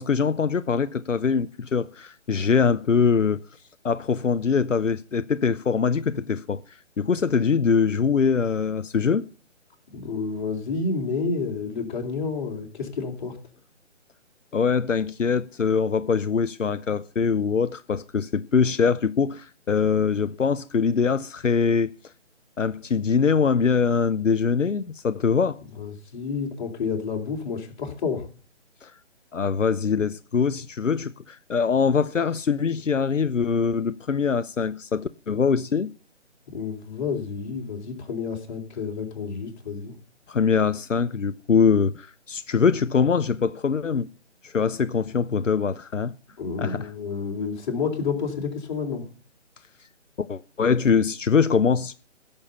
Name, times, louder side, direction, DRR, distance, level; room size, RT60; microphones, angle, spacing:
voice 1, 0.0-3.4 3.8-6.6 7.0-9.3 14.5-21.9 22.6-25.6 28.8-28.9 29.3-35.9 40.3-44.1 44.4-46.1 46.6-46.9 50.2-51.9, left 5 dB, 90° left, 0.8 m, -23 dB
voice 2, 9.9-13.4 25.8-28.3 36.5-39.9 46.4-49.0, left 5 dB, 40° left, 3.5 m, -30 dB
16.0 x 7.2 x 6.8 m
figure-of-eight pair, 155°, 37 cm